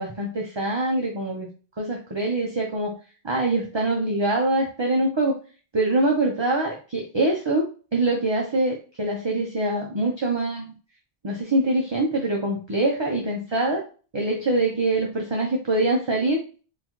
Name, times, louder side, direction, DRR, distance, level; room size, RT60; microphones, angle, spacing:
voice 1, 0.0-1.5 1.8-3.0 3.2-5.3 5.7-7.6 7.9-10.7 11.2-13.8 14.1-16.4, right 2 dB, 30° right, -1 dB, 0.6 m, -24 dB
3.7 x 2.5 x 3.0 m, 0.36 s
omnidirectional pair, 1.0 m